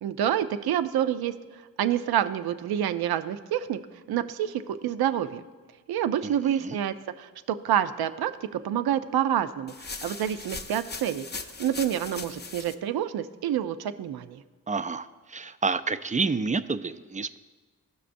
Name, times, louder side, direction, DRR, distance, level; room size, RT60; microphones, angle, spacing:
voice 1, 0.0-1.3 1.8-3.8 4.1-5.4 5.9-9.7 10.0-11.3 11.6-14.4, right 10 dB, 80° right, 11 dB, 0.5 m, -27 dB
voice 2, 6.2-6.8 14.7-17.4, right 4 dB, 20° right, 12 dB, 0.3 m, -29 dB
sound 1, 9.7-12.7, left 4 dB, 30° left, 0.6 m, -39 dB
15.0 x 6.0 x 2.5 m, 1.3 s
cardioid pair, 45°, 37 cm